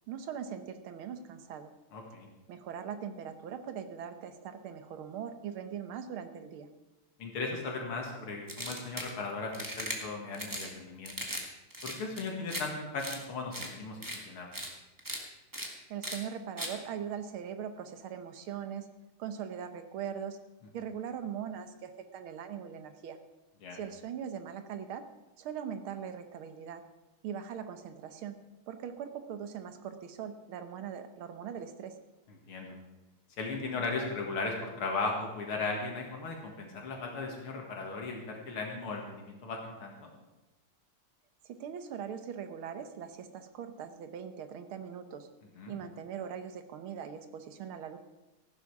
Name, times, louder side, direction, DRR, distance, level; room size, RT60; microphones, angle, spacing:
voice 1, 0.1-1.7 2.5-6.7 15.9-18.9 19.2-20.4 20.7-23.2 23.7-25.0 25.4-26.8 27.2-28.4 28.7-32.0 41.4-45.3 45.7-48.0, right 8 dB, 75° right, 9 dB, 1.9 m, -40 dB
voice 2, 1.9-2.3 7.2-11.1 11.8-14.5 23.6-23.8 32.5-32.7 33.4-40.1 45.6-45.8, left 3 dB, 80° left, 0 dB, 2.7 m, -37 dB
sound 1, 8.5-9.1 9.5-10.0 10.3-10.7 11.0-11.4 11.7-12.6 13.0-13.2 13.5-13.7 14.0-14.2 14.5-14.7 15.0-15.2 15.5-15.7 16.0-16.2 16.6-16.7, right 1 dB, 10° right, 1.6 m, -38 dB
14.5 x 11.5 x 4.8 m, 1.0 s
omnidirectional pair, 2.4 m